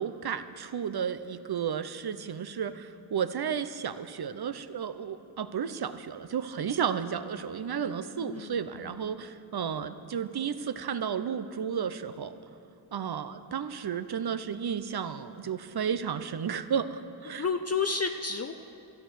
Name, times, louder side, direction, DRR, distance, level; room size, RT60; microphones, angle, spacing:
voice 1, 0.0-12.3 12.9-17.5, right 7 dB, 55° right, 12 dB, 0.7 m, -33 dB
voice 2, 8.2-8.9 17.3-18.5, left 5 dB, 35° left, 6 dB, 0.5 m, -31 dB
13.0 x 9.4 x 6.4 m, 2.6 s
cardioid pair, 50°, 46 cm